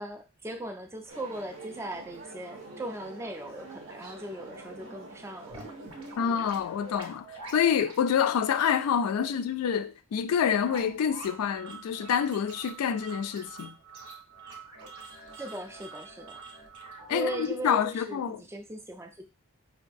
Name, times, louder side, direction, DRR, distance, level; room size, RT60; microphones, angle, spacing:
voice 1, 0.0-5.7 15.4-16.4 17.1-19.2, right 1 dB, 10° right, 0.3 m, -38 dB
sound 1, 1.1-7.0, right 2 dB, 60° right, 0.6 m, -46 dB
sound 2, 5.5-8.0 8.3-8.4 8.8-8.9 9.3-9.4 9.8-9.9 10.2-10.3 10.6-17.5, right 3 dB, 85° right, 0.9 m, -46 dB
voice 2, 6.2-7.3 7.5-13.7 17.1-18.4, left 8 dB, 90° left, 0.3 m, -27 dB
4.7 x 2.3 x 2.5 m
head